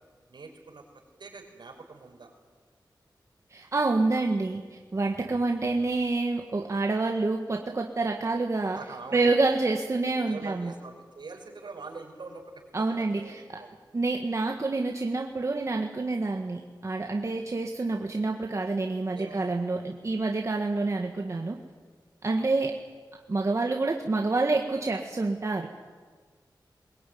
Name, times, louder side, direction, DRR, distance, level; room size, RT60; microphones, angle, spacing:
voice 1, 0.3-0.8 1.2-2.3 8.7-9.3 10.2-12.4 12.8-13.7 19.1-19.6 22.3-22.5, right 4 dB, 75° right, 1 dB, 5.4 m, -44 dB
voice 2, 3.5-4.6 4.9-8.8 9.1-10.7 12.7-13.6 13.9-21.6 22.2-22.8 23.3-25.7, right 3 dB, 40° right, 2 dB, 1.7 m, -27 dB
22.0 x 22.0 x 9.4 m, 1.5 s
wide cardioid pair, 125°, 8 cm